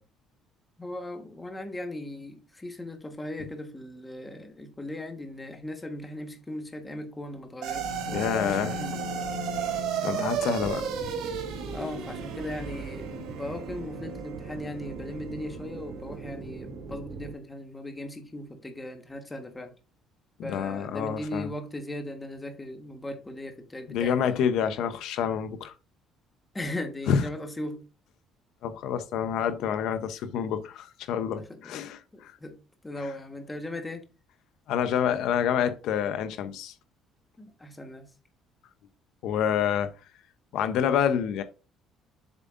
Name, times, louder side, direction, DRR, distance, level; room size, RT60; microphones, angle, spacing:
voice 1, 0.8-9.0 10.0-10.3 11.7-19.7 20.4-24.9 26.5-27.8 31.3-32.6 32.8-34.1 37.4-38.1, left 1 dB, 10° left, 1.3 m, -38 dB
sound 1, 7.6-16.1, right 5 dB, 90° right, 3.3 m, -34 dB
voice 2, 8.1-8.7 10.0-10.8 20.4-21.5 23.9-25.7 27.1-27.2 28.6-32.3 34.7-36.7 39.2-39.9 40.5-41.4, left 8 dB, 70° left, 0.7 m, -27 dB
sound 2, 8.1-17.3, right 4 dB, 60° right, 1.8 m, -42 dB
7.5 x 7.3 x 2.5 m
cardioid pair, 145°, 0 cm